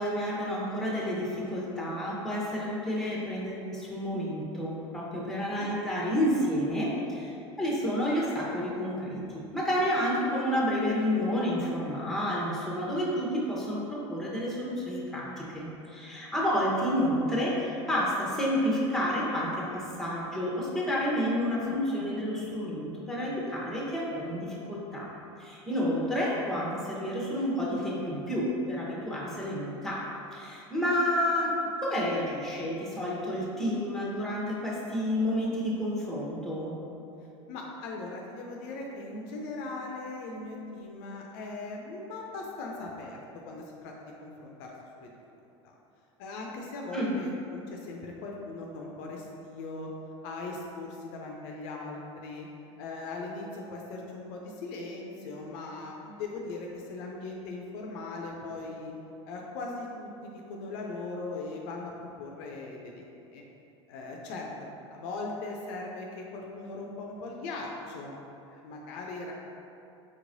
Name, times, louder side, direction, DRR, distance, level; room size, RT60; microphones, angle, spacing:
voice 1, 0.0-25.1 25.4-30.0 30.3-36.8 46.9-47.1, equal, ahead, -5 dB, 0.9 m, -30 dB
voice 2, 5.3-5.7 21.6-22.2 37.5-43.2 43.4-45.1 45.6-45.7 46.2-49.9 50.2-52.5 52.8-58.9 59.3-63.0 63.3-63.4 63.9-68.2 68.4-69.3, left 3 dB, 60° left, -1 dB, 0.5 m, -39 dB
4.3 x 3.0 x 2.6 m, 2.8 s
hypercardioid pair, 90°, 15 cm